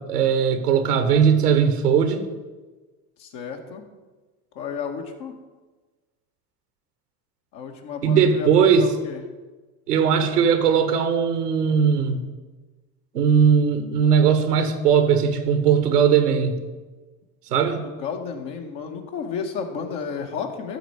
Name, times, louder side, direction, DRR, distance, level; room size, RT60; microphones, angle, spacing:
voice 1, 0.0-2.3 8.0-8.9 9.9-12.2 13.1-16.6 17.5-17.8, right 7 dB, 90° right, 9 dB, 1.3 m, -19 dB
voice 2, 3.2-3.8 4.6-5.3 7.5-9.2 17.5-20.8, left 6 dB, 60° left, 3 dB, 1.9 m, -32 dB
12.5 x 4.5 x 8.1 m, 1.3 s
hypercardioid pair, 75°, 46 cm